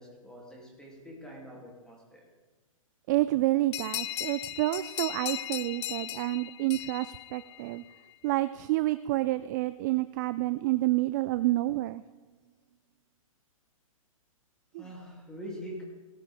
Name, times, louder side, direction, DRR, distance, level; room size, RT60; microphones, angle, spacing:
voice 1, 0.0-2.3 7.5-7.8 14.8-15.8, equal, 5° left, -2 dB, 2.8 m, -45 dB
voice 2, 3.1-7.8 8.2-12.0 14.7-14.8, right 17 dB, 30° right, 14 dB, 0.4 m, -29 dB
sound 1, 3.7-8.0, left 13 dB, 50° left, 0.5 m, -37 dB
17.5 x 14.0 x 3.6 m, 1.3 s
hypercardioid pair, 140°, 18 cm